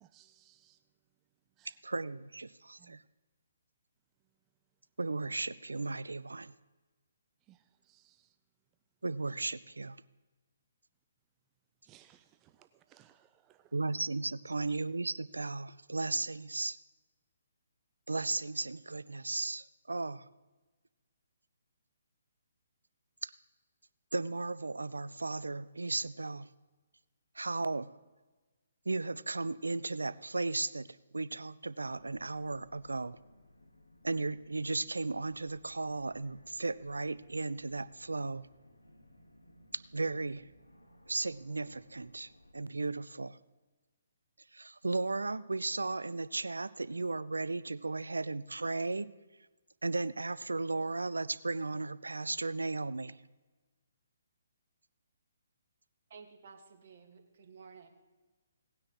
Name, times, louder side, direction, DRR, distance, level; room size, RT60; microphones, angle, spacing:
voice 1, 0.0-0.8 1.6-1.8 2.8-3.0 7.4-8.4 11.8-13.8 14.5-14.6, right 12 dB, 20° right, 0.4 m, -63 dB
voice 2, 1.8-3.0 5.0-6.5 9.0-10.0 13.7-16.8 18.1-20.2 23.2-23.3 24.1-26.5 27.4-27.9 28.9-30.9 31.1-33.2 34.0-38.5 39.9-40.5 41.1-43.4 44.5-49.1 49.8-53.2, right 3 dB, 80° right, 0.4 m, -35 dB
sound 1, 31.9-42.5, equal, 85° left, 1.4 m, -61 dB
voice 3, 56.1-57.9, right 5 dB, 50° right, 1.6 m, -53 dB
18.0 x 9.5 x 3.0 m
figure-of-eight pair, 135°, 0 cm